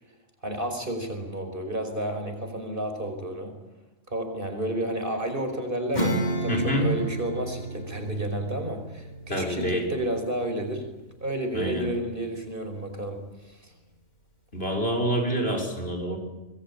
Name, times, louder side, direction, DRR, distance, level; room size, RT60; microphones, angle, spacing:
voice 1, 0.4-3.5 4.1-10.9 11.2-13.7, right 1 dB, 45° right, 5 dB, 5.5 m, -31 dB
Acoustic guitar / Strum, 5.9-11.9, right 1 dB, 35° left, 5.3 m, -33 dB
voice 2, 6.5-6.8 9.3-9.8 11.5-11.8 14.5-16.2, equal, 55° left, 2 dB, 6.2 m, -27 dB
27.5 x 21.5 x 8.7 m, 1.1 s
omnidirectional pair, 1.2 m